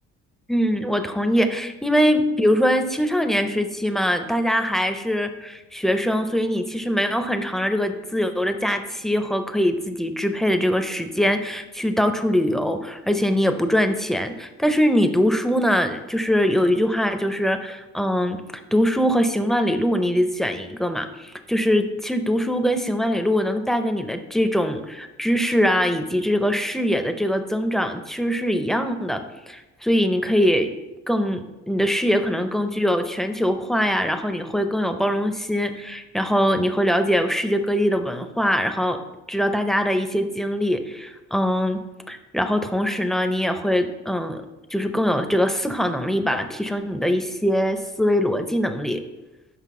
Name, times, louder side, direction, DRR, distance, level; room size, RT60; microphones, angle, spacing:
voice 1, 0.5-18.4 18.7-29.2 29.5-30.7 31.1-39.0 39.3-41.8 42.1-44.4 44.7-49.0, equal, ahead, 7 dB, 0.4 m, -22 dB
5.9 x 5.2 x 3.6 m, 1.1 s
cardioid pair, 90°, 30 cm